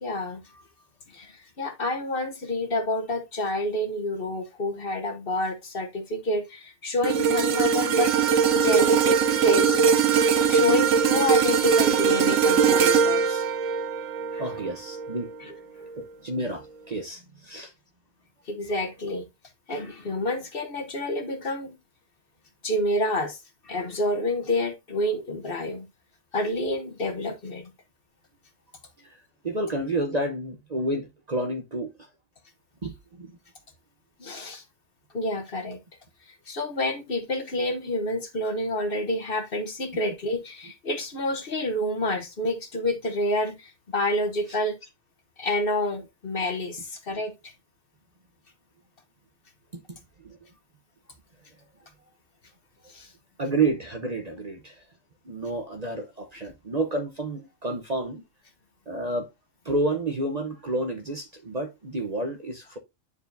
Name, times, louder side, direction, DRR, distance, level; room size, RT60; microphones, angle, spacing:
voice 1, 0.0-0.4 1.1-8.1 8.5-9.8 10.5-13.5 14.3-14.4 15.4-15.5 18.5-19.3 19.7-21.7 22.6-23.4 23.6-25.9 26.3-27.7 34.2-34.6 35.1-35.8 36.5-44.8 45.4-47.5 52.9-53.1, left 1 dB, 45° left, 1.2 m, -28 dB
sound 1, 7.0-15.4 15.8-16.0, right 6 dB, 70° right, 1.0 m, -21 dB
voice 2, 14.4-15.4 16.0-17.7 29.0-29.2 29.4-32.1 32.8-33.3 50.2-50.4 53.4-54.8 55.2-58.2 58.9-59.3 59.6-62.8, right 2 dB, 35° right, 0.8 m, -30 dB
9.6 x 4.7 x 2.6 m
omnidirectional pair, 1.3 m